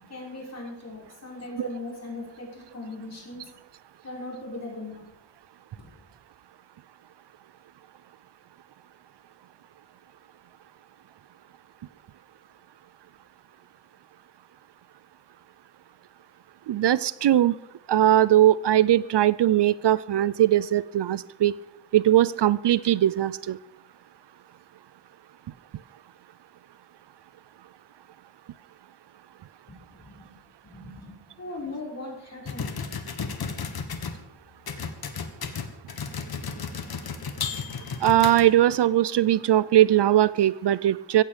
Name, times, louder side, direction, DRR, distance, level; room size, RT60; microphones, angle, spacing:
voice 1, 0.0-3.6 4.0-5.1 5.7-5.9 29.7-30.4 30.6-32.8, left 2 dB, 35° left, -3 dB, 5.8 m, -39 dB
voice 2, 16.7-17.5 17.9-21.5 21.9-23.6 38.0-41.2, right 12 dB, 70° right, 18 dB, 0.6 m, -20 dB
sound 1, 32.5-34.2 34.7-38.8, left 5 dB, 60° left, 1.8 m, -33 dB
16.5 x 15.0 x 5.1 m, 0.85 s
wide cardioid pair, 145°, 43 cm